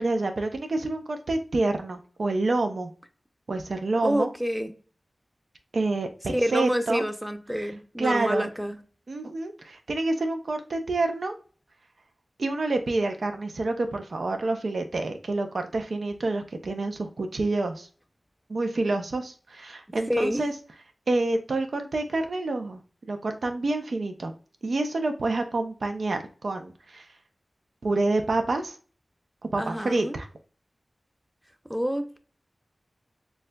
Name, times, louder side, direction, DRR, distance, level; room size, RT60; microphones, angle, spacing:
voice 1, 0.0-2.9 3.5-4.3 5.7-7.0 8.0-8.5 9.1-11.3 12.4-17.9 18.5-20.5 21.1-22.8 23.1-24.3 24.6-27.1 27.8-28.8 29.5-30.3, right 2 dB, 80° right, 0.5 m, -28 dB
voice 2, 4.0-4.7 6.3-8.8 20.1-20.4 29.6-30.2 31.7-32.2, equal, 5° right, 0.7 m, -27 dB
6.3 x 2.3 x 2.2 m
cardioid pair, 40°, 0 cm